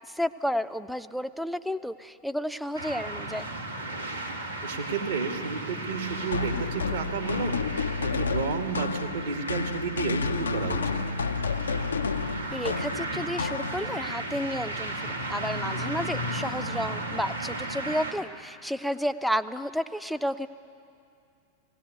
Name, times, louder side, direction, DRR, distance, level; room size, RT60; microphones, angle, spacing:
voice 1, 0.1-3.4 12.5-20.5, equal, ahead, 11 dB, 0.6 m, -31 dB
sound 1, 2.7-18.1, right 2 dB, 85° right, 1.8 m, -35 dB
voice 2, 4.6-7.6 8.0-11.0, right 5 dB, 65° right, 3 dB, 2.1 m, -31 dB
sound 2, 6.3-14.1, left 4 dB, 75° left, 0.6 m, -31 dB
18.5 x 17.0 x 9.3 m, 2.5 s
figure-of-eight pair, 90°, 0 cm